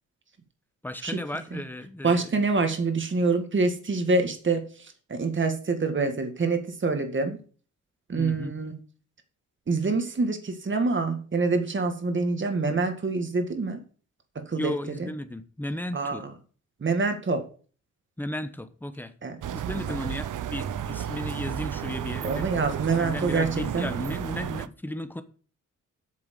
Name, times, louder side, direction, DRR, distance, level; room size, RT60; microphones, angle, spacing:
voice 1, 0.8-2.3 8.1-8.5 14.6-16.2 18.2-19.1 19.5-22.5 23.0-25.2, left 1 dB, 5° left, 1.1 m, -34 dB
voice 2, 2.0-4.7 5.1-7.4 8.1-8.8 9.7-13.8 14.4-14.7 15.0-15.1 15.9-16.3 16.8-17.4 19.2-19.4 22.2-23.9, right 3 dB, 40° right, 2.0 m, -26 dB
sound 1, 19.4-24.7, right 10 dB, 80° right, 0.7 m, -32 dB
8.8 x 7.0 x 6.6 m
wide cardioid pair, 115°, 31 cm